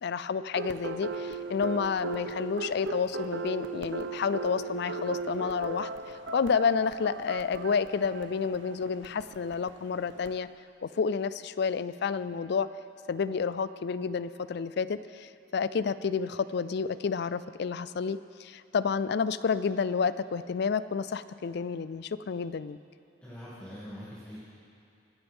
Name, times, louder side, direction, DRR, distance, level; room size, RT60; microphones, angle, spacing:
voice 1, 0.0-5.9 6.3-10.5 10.8-12.7 13.1-22.8, left 5 dB, 60° left, 15 dB, 0.4 m, -30 dB
sound 1, 0.5-10.4, right 3 dB, 80° right, 0.7 m, -37 dB
voice 2, 23.2-24.4, equal, 10° left, -12 dB, 2.4 m, -43 dB
24.0 x 10.0 x 3.6 m, 2.6 s
head